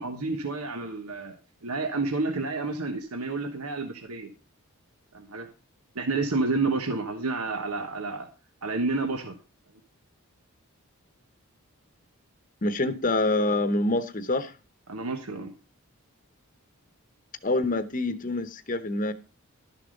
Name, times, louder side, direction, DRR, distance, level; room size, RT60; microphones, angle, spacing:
voice 1, 0.0-1.4 1.6-4.3 5.1-5.5 5.9-8.3 8.6-9.3 14.9-15.5, right 3 dB, 85° right, 1.3 m, -30 dB
voice 2, 12.6-14.5 17.4-19.1, left 2 dB, 35° left, 0.9 m, -26 dB
12.0 x 7.0 x 5.2 m
head